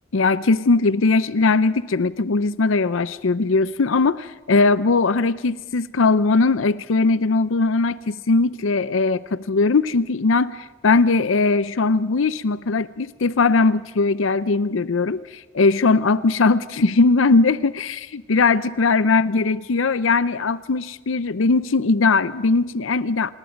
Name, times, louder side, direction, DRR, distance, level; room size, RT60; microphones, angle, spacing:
voice 1, 0.1-23.3, left 3 dB, 80° left, 16 dB, 0.6 m, -19 dB
26.5 x 20.0 x 5.2 m, 1.1 s
head